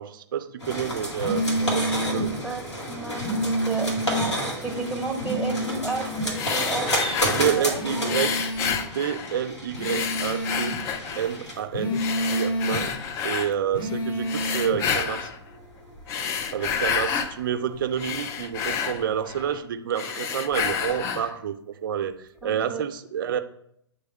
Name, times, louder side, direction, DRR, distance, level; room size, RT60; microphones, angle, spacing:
voice 1, 0.0-2.3 7.2-8.4 8.8-10.8 11.2-12.0 12.3-12.9 13.2-15.3 16.5-23.4, right 9 dB, 50° right, 9 dB, 0.6 m, -29 dB
sound 1, 0.6-19.5, equal, 85° left, 2.0 m, -33 dB
sound 2, 1.2-2.3 3.2-4.3 5.2-6.3 7.7-8.8 9.7-10.8 11.7-12.8 13.7-14.8, equal, 50° left, 1.5 m, -28 dB
voice 2, 2.1-2.6 2.9-6.0 6.5-7.8 12.8-12.9 16.7-16.8 22.4-22.8, right 3 dB, 5° right, 1 dB, 0.7 m, -33 dB
sound 3, 6.3-7.6 8.1-9.5 9.8-11.4 11.9-13.5 14.2-15.4 16.0-17.4 17.7-19.6 19.9-21.4, left 7 dB, 20° left, 0.4 m, -29 dB
8.0 x 3.4 x 4.4 m, 0.73 s
figure-of-eight pair, 110°, 14 cm